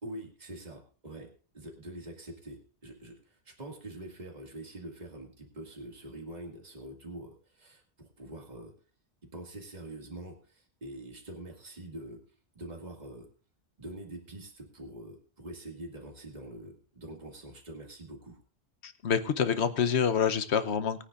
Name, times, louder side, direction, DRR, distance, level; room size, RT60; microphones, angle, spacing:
voice 1, 0.0-8.7 9.3-12.2 12.5-13.3 13.8-18.4, right 1 dB, 35° right, 0 dB, 2.3 m, -45 dB
voice 2, 18.8-21.0, left 7 dB, 65° left, 11 dB, 1.2 m, -27 dB
21.5 x 9.7 x 2.5 m, 0.38 s
omnidirectional pair, 1.2 m